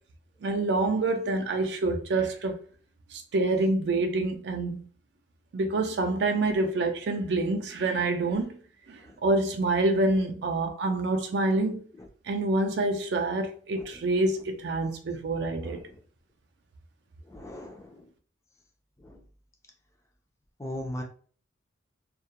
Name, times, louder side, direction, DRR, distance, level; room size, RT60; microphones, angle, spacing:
voice 1, 0.4-2.6 3.1-4.9 5.5-8.6 8.9-11.8 12.3-15.8, right 2 dB, 65° right, 0.4 m, -27 dB
voice 2, 15.6-16.0 17.3-18.1 19.0-19.2 20.6-21.0, left 1 dB, 15° left, 0.4 m, -40 dB
2.3 x 2.1 x 2.8 m
head